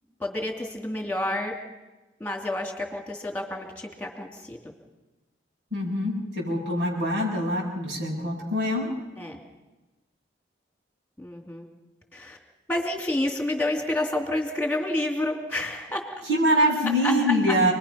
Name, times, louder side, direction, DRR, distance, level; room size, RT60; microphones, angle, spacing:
voice 1, 0.2-1.5 2.2-4.7 9.2-9.4 11.2-11.6 12.1-12.4 12.7-16.0 17.0-17.3, left 1 dB, 10° left, 2 dB, 2.9 m, -29 dB
voice 2, 5.7-8.9 16.3-17.7, equal, 70° right, -4 dB, 7.4 m, -24 dB
28.5 x 21.0 x 5.9 m, 1.1 s
head